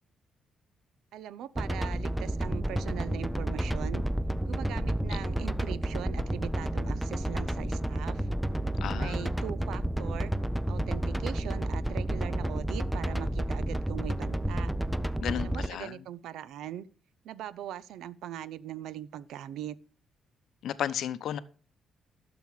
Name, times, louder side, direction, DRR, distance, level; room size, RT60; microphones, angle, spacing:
voice 1, 1.1-4.0 4.5-8.3 8.9-10.3 10.7-14.7 15.4-16.9 17.2-19.8, right 11 dB, 85° right, 0.5 m, -40 dB
sound 1, 1.6-15.7, right 1 dB, ahead, 0.5 m, -31 dB
voice 2, 8.8-9.3 15.2-15.9 20.6-21.4, left 10 dB, 70° left, 0.7 m, -33 dB
12.0 x 6.9 x 4.8 m
cardioid pair, 135°, 0 cm